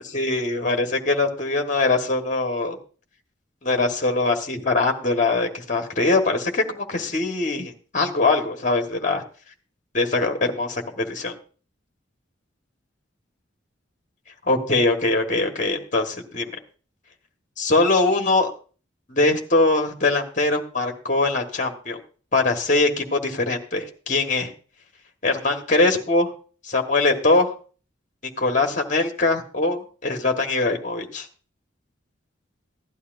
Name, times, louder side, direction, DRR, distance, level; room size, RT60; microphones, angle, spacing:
voice 1, 0.1-2.8 3.6-9.2 9.9-11.3 14.5-16.5 17.6-18.5 19.1-22.0 22.3-24.5 25.2-26.3 26.6-27.5 28.4-31.3, left 2 dB, 40° left, 4 dB, 1.4 m, -22 dB
16.0 x 11.0 x 2.5 m, 0.38 s
head